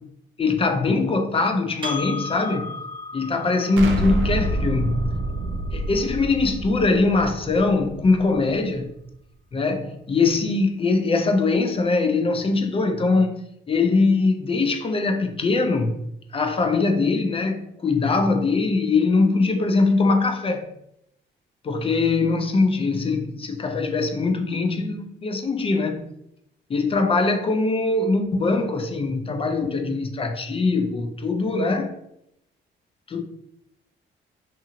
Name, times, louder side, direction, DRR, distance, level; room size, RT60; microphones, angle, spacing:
voice 1, 0.4-2.7 3.1-5.0 5.7-8.9 9.5-16.0 16.3-20.7 21.6-26.1 26.7-31.9 33.1-33.2, left 3 dB, 30° left, 0.4 m, -22 dB
Percussion, 1.8-6.6, left 2 dB, 25° right, 0.9 m, -36 dB
Explosion, 3.8-8.6, right 2 dB, 75° right, 0.5 m, -28 dB
2.8 x 2.7 x 2.5 m
cardioid pair, 90°, 20 cm